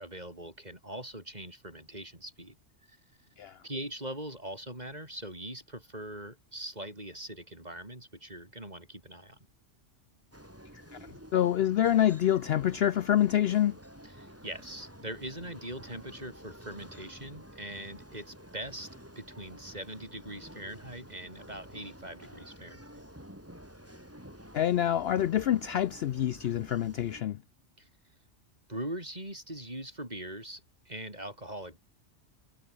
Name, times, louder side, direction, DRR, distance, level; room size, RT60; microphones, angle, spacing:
voice 1, 0.0-2.6 2.9-3.0 3.6-9.4 14.0-18.9 19.2-23.0 27.8-27.9 28.7-31.8, right 1 dB, 35° right, 7.9 m, -42 dB
sound 1, 10.3-27.2, equal, 10° right, 6.3 m, -50 dB
voice 2, 11.3-13.8 24.5-27.4, left 11 dB, 65° left, 0.7 m, -26 dB
omnidirectional pair, 1.3 m